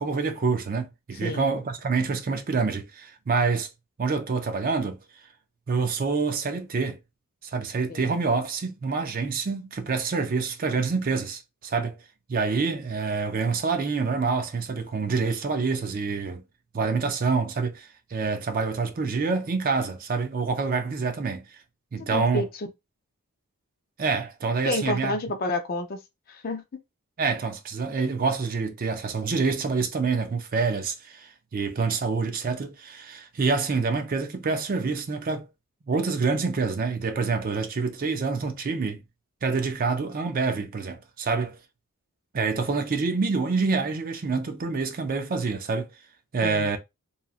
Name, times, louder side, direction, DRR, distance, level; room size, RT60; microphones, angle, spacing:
voice 1, 0.0-3.7 4.0-5.0 5.7-7.0 7.4-12.0 12.3-16.4 16.7-21.5 21.9-22.5 24.0-25.2 27.2-35.5 35.9-39.0 39.4-41.6 42.3-45.9 46.3-46.8, right 4 dB, 40° right, 0.4 m, -27 dB
voice 2, 22.1-22.7 24.6-26.0 26.3-26.6 46.4-46.8, left 2 dB, 40° left, 0.5 m, -29 dB
2.9 x 2.4 x 2.4 m
head